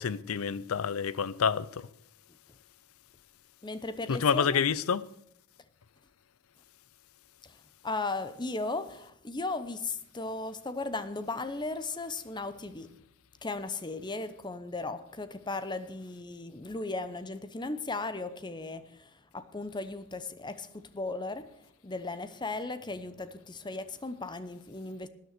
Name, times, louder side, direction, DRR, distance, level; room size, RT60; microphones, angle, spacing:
voice 1, 0.0-1.9 4.1-5.1, left 6 dB, 75° left, 0.5 m, -28 dB
voice 2, 3.6-4.6 7.8-12.9 13.4-21.5 21.8-25.1, left 3 dB, 20° left, 0.8 m, -36 dB
12.5 x 9.6 x 6.6 m
head